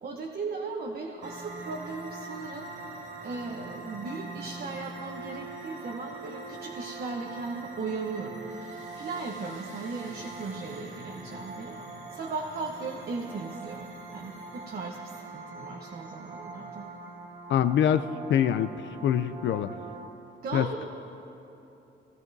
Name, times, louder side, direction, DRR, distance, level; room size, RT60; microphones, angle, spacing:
voice 1, 0.0-3.0 3.2-8.4 9.0-11.8 12.1-16.9 20.4-20.8, right 4 dB, 50° right, 1 dB, 0.9 m, -37 dB
sound 1, 1.2-20.1, right 3 dB, 80° right, 1.9 m, -42 dB
voice 2, 17.5-18.0 18.3-18.7 19.0-19.7 20.5-20.7, left 10 dB, 65° left, 12 dB, 0.4 m, -24 dB
17.5 x 13.5 x 2.7 m, 2.9 s
cardioid pair, 90°, 20 cm